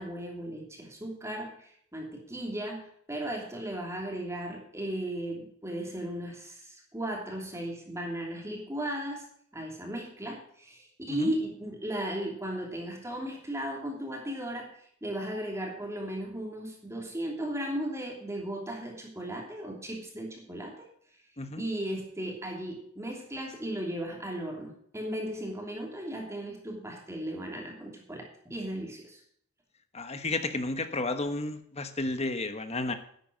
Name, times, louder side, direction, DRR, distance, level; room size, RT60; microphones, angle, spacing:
voice 1, 0.0-9.2 9.5-14.7 15.0-20.9 21.6-29.2, right 1 dB, 15° right, 0 dB, 2.9 m, -36 dB
voice 2, 29.9-32.9, left 2 dB, 30° left, 9 dB, 1.2 m, -32 dB
11.0 x 8.7 x 6.3 m, 0.64 s
head